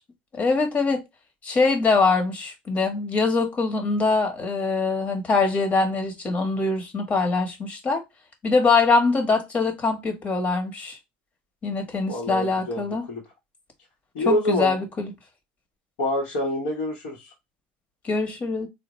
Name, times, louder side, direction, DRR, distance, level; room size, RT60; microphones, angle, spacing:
voice 1, 0.3-1.0 1.4-8.0 8.4-11.0 11.6-13.1 14.2-15.1 18.0-18.7, left 3 dB, 35° left, 1.1 m, -23 dB
voice 2, 12.1-13.2 14.1-14.8 16.0-17.3, left 1 dB, 85° left, 1.0 m, -27 dB
3.7 x 2.2 x 2.9 m
supercardioid pair, 110°, 5 cm